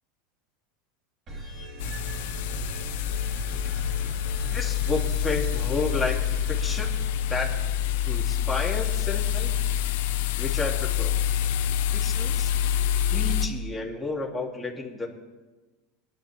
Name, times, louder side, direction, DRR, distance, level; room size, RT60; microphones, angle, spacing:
sound 1, 1.3-7.9, equal, 40° right, 3.8 m, -39 dB
sound 2, 1.8-13.5, left 10 dB, 75° left, 0.9 m, -27 dB
voice 1, 4.4-6.2 6.5-6.9 7.3-7.5 8.0-9.5 10.4-11.1 11.9-12.5 13.1-15.1, left 2 dB, 10° left, -2 dB, 2.7 m, -31 dB
20.5 x 11.0 x 3.5 m, 1.2 s
supercardioid pair, 115°, 0 cm